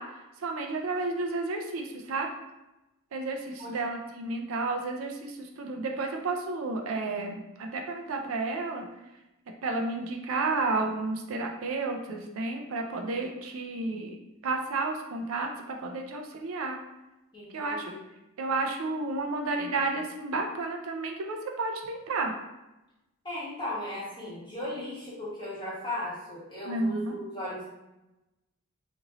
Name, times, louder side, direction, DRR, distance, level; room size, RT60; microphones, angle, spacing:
voice 1, 0.0-2.3 3.1-8.9 9.6-14.2 14.4-16.8 17.5-17.9 18.4-22.3 26.7-27.2, right 3 dB, 65° right, 3 dB, 0.4 m, -31 dB
voice 2, 17.3-18.0 23.2-27.7, left 1 dB, 20° left, -8 dB, 1.3 m, -36 dB
3.0 x 2.5 x 3.8 m, 0.98 s
head